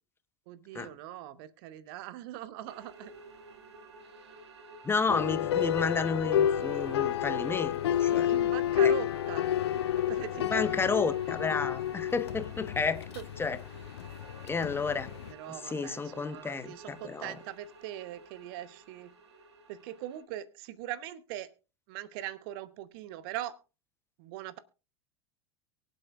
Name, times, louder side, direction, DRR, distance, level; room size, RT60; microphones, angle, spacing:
voice 1, 0.5-3.1 8.3-9.5 9.9-10.9 13.1-13.2 15.3-19.1 19.7-21.5 21.9-23.6 24.2-24.6, right 13 dB, 55° right, 0.9 m, -41 dB
sound 1, 2.7-20.2, right 2 dB, 75° right, 2.1 m, -52 dB
voice 2, 4.8-8.3 8.8-8.9 10.5-13.1 13.4-13.6 14.4-15.1 15.7-17.4, left 4 dB, 15° left, 1.1 m, -31 dB
sound 2, 5.1-15.3, left 10 dB, 70° left, 0.7 m, -30 dB
23.5 x 8.0 x 2.4 m
figure-of-eight pair, 85°, 14 cm